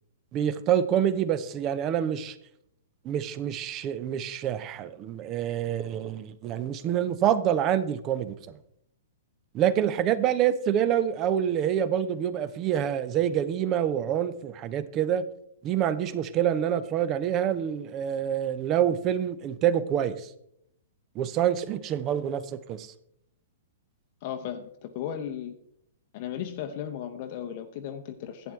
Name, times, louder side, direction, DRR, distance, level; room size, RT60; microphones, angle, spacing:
voice 1, 0.3-2.4 3.0-8.6 9.5-15.2 15.6-20.3 21.1-22.9, right 10 dB, 30° right, 15 dB, 0.7 m, -26 dB
voice 2, 24.2-25.6 26.1-28.5, left 9 dB, 40° left, 6 dB, 0.7 m, -35 dB
12.0 x 8.8 x 3.2 m, 0.75 s
figure-of-eight pair, 110°, 0 cm